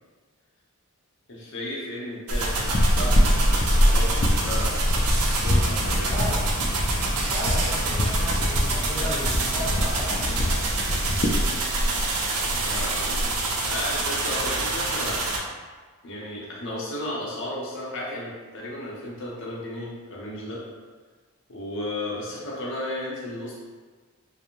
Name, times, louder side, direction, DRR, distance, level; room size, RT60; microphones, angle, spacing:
voice 1, 1.3-3.3 3.8-4.8 5.4-6.1 12.4-15.3 16.0-20.6 21.5-23.6, left 1 dB, 60° left, -5 dB, 0.7 m, -34 dB
sound 1, 2.3-15.4, right 1 dB, 80° right, 0.5 m, -25 dB
sound 2, 2.7-11.4, left 1 dB, 35° left, 0.3 m, -26 dB
voice 2, 6.0-6.4 7.1-10.5, equal, 15° left, -14 dB, 1.3 m, -34 dB
2.5 x 2.0 x 2.9 m, 1.4 s
head